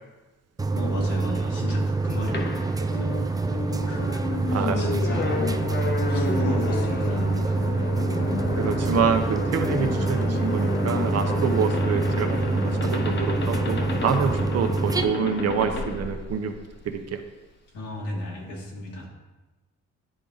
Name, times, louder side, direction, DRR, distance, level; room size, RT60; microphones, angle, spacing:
sound 1, 0.6-15.0, right 3 dB, 15° right, 0.4 m, -26 dB
voice 1, 0.7-3.1 3.9-5.7 6.1-7.9 17.7-19.1, left 1 dB, 90° left, -3 dB, 2.0 m, -34 dB
sound 2, 2.3-16.9, left 4 dB, 35° left, 0.8 m, -31 dB
voice 2, 4.5-4.8 8.6-16.5 16.8-17.2, right 6 dB, 55° right, 6 dB, 0.8 m, -26 dB
9.9 x 3.6 x 4.0 m, 1.1 s
cardioid pair, 90°, 30 cm